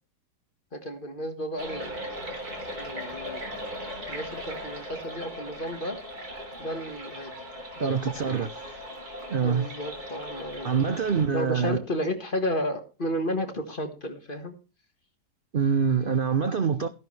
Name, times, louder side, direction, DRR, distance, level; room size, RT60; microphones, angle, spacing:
voice 1, 0.7-2.0 2.8-3.4 4.1-6.0 6.6-7.3 7.8-8.4 9.4-10.9 11.3-14.6, equal, 30° left, 1.8 m, -32 dB
sound 1, 1.6-11.3, equal, 55° right, 3.6 m, -38 dB
voice 2, 7.8-8.5 9.3-9.7 10.6-11.8 15.5-16.9, right 6 dB, 80° right, 0.4 m, -25 dB
15.0 x 11.0 x 3.3 m
omnidirectional pair, 1.9 m